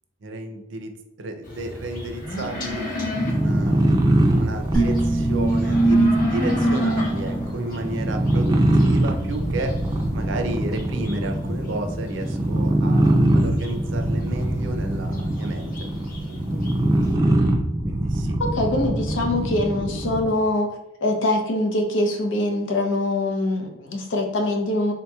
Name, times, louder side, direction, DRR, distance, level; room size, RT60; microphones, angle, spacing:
voice 1, 0.2-0.9 1.2-9.7 10.1-15.9 16.3-16.5 17.8-18.4, right 1 dB, 75° right, 5 dB, 0.5 m, -32 dB
sound 1, 1.4-17.1, equal, 45° left, 0.9 m, -31 dB
sound 2, 3.1-20.4, right 1 dB, 20° right, 0.4 m, -22 dB
sound 3, 4.7-8.1, right 2 dB, 5° left, 0.8 m, -23 dB
voice 2, 18.4-20.7 21.0-24.9, left 1 dB, 80° left, 3 dB, 0.6 m, -23 dB
3.8 x 2.8 x 2.3 m, 0.90 s
head